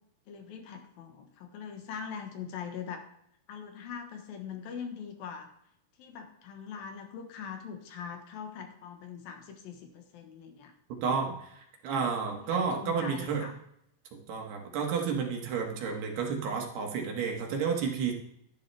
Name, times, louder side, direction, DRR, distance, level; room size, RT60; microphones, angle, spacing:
voice 1, 0.3-3.1 3.5-5.5 6.0-10.7 12.4-13.6, left 7 dB, 70° left, 4 dB, 3.0 m, -42 dB
voice 2, 11.0-11.5 11.8-13.4 14.1-18.1, right 6 dB, 85° right, 1 dB, 3.8 m, -31 dB
13.5 x 11.0 x 3.4 m, 0.73 s
omnidirectional pair, 4.5 m